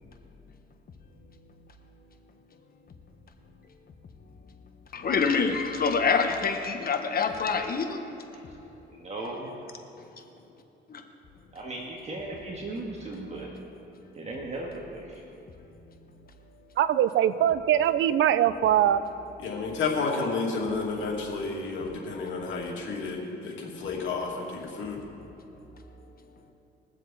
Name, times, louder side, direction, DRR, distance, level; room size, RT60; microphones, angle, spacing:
voice 1, 4.9-8.0 10.9-11.0, left 5 dB, 50° left, 5 dB, 1.2 m, -26 dB
voice 2, 8.9-9.7 11.5-13.5 14.1-15.2, right 2 dB, 35° right, -2 dB, 1.8 m, -37 dB
voice 3, 16.8-19.0, right 11 dB, 75° right, 13 dB, 0.6 m, -22 dB
voice 4, 19.4-25.0, left 4 dB, 75° left, -1 dB, 2.5 m, -31 dB
22.0 x 7.4 x 4.1 m, 3.0 s
cardioid pair, 90°, 20 cm